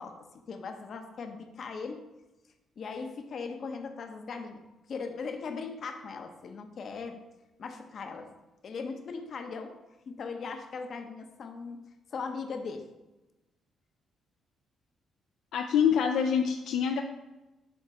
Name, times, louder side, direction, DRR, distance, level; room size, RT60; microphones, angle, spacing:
voice 1, 0.0-2.1 2.8-4.6 4.9-7.2 7.6-8.3 8.6-9.7 10.1-11.8 12.1-12.9, left 4 dB, 55° left, 6 dB, 0.7 m, -39 dB
voice 2, 15.5-17.0, left 7 dB, 80° left, 4 dB, 0.4 m, -25 dB
7.0 x 3.0 x 4.7 m, 1.0 s
cardioid pair, 90°, 0 cm